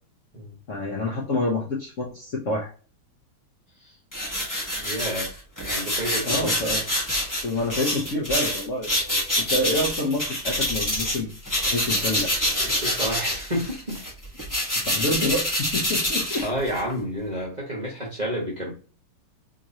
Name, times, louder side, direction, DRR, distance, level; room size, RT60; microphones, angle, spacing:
voice 1, 0.7-2.7 6.2-6.8 7.4-11.3 11.6-12.3 14.8-16.5, left 1 dB, 55° left, -3 dB, 0.8 m, -27 dB
sound 1, 4.1-11.2 11.4-16.9, left 1 dB, 15° left, 0.7 m, -26 dB
voice 2, 4.8-5.3 5.7-6.5 12.6-14.0 16.4-18.7, equal, 30° right, -4 dB, 0.9 m, -30 dB
3.7 x 3.0 x 2.7 m, 0.38 s
omnidirectional pair, 2.3 m